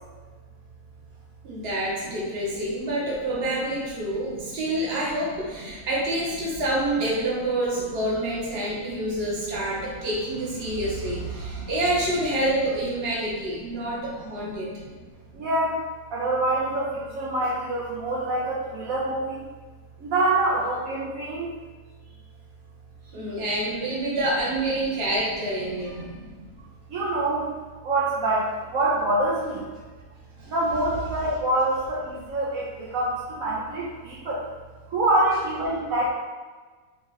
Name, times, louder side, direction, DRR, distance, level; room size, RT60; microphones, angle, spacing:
voice 1, 1.4-14.7 23.1-26.1 30.4-30.5, right 1 dB, 45° right, -4 dB, 1.2 m, -27 dB
voice 2, 15.3-15.8 16.1-19.5 20.0-21.5 26.2-26.5 26.9-27.5 27.8-29.6 30.5-34.4 34.9-36.1, right 2 dB, 65° right, -7 dB, 1.1 m, -26 dB
4.9 x 2.4 x 4.0 m, 1.4 s
omnidirectional pair, 1.6 m